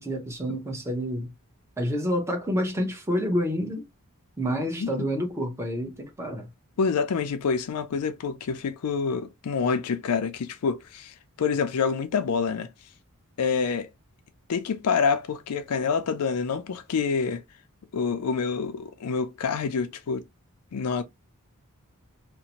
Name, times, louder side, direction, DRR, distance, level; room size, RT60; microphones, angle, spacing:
voice 1, 0.0-1.3 1.8-3.8 4.4-6.5, equal, 10° right, 0.7 m, -28 dB
voice 2, 6.8-12.7 13.4-13.9 14.5-17.4 17.9-20.2 20.7-21.0, left 5 dB, 90° left, 0.4 m, -27 dB
2.6 x 2.1 x 2.8 m
head